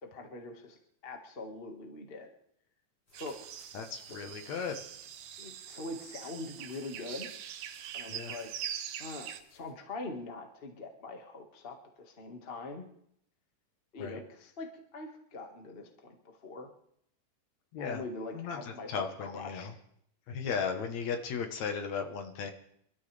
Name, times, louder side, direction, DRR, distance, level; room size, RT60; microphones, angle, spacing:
voice 1, 0.0-0.8 1.0-2.3 3.1-3.4 4.1-4.2 5.4-7.3 7.9-8.6 9.0-12.9 13.9-16.7 17.8-18.9 19.2-19.7, left 3 dB, 75° left, 3 dB, 0.5 m, -43 dB
sound 1, 3.1-9.7, left 1 dB, 30° left, 8.0 m, -65 dB
sound 2, 3.1-9.4, right 9 dB, 85° right, 2.9 m, -43 dB
voice 2, 3.7-4.8 8.1-8.3 14.0-14.2 17.7-18.0 18.3-19.7 20.3-22.5, left 6 dB, 60° left, 6 dB, 2.1 m, -36 dB
26.5 x 13.0 x 3.4 m, 0.69 s
omnidirectional pair, 4.3 m